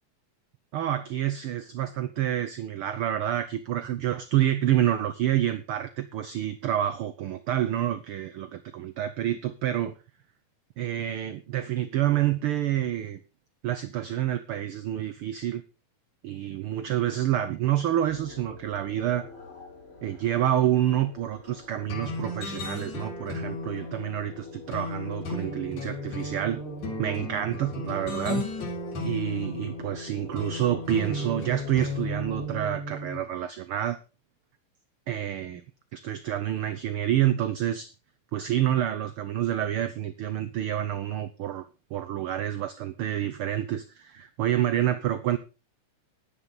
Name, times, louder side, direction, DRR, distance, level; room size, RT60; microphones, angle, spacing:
voice 1, 0.7-9.9 10.8-13.2 13.6-15.6 16.2-19.3 20.0-26.6 27.0-28.5 29.0-34.0 35.1-35.6 35.9-37.9 38.3-41.7 41.9-45.4, right 11 dB, 70° right, 12 dB, 1.4 m, -28 dB
sound 1, 18.1-32.5, left 2 dB, 20° left, 4.1 m, -45 dB
sound 2, 21.9-33.2, left 1 dB, 75° left, 4.2 m, -35 dB
11.0 x 10.0 x 5.3 m, 0.31 s
omnidirectional pair, 3.4 m